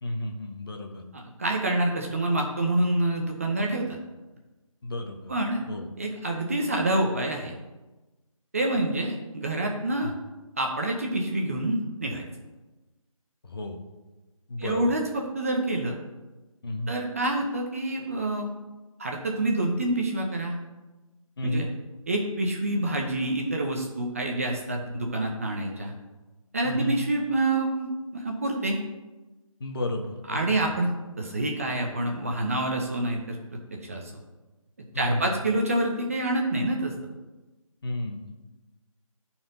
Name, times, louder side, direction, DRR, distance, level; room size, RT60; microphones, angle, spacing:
voice 1, 0.0-1.0 4.8-5.3 5.7-5.9 10.0-10.1 13.4-13.8 14.5-14.9 16.6-16.9 21.4-21.7 24.8-25.1 26.6-27.0 29.6-30.7 34.9-35.4 37.8-38.3, left 1 dB, 40° left, 3 dB, 1.0 m, -32 dB
voice 2, 1.1-4.0 5.3-5.6 6.0-7.5 8.5-10.1 10.6-12.3 14.6-16.0 16.9-18.5 19.0-20.6 21.4-21.7 22.1-25.9 26.5-28.8 30.3-30.9 31.2-33.4 33.8-34.0 34.9-36.9, right 1 dB, 25° right, 1 dB, 0.6 m, -27 dB
11.0 x 4.4 x 3.8 m, 1.1 s
figure-of-eight pair, 165°, 18 cm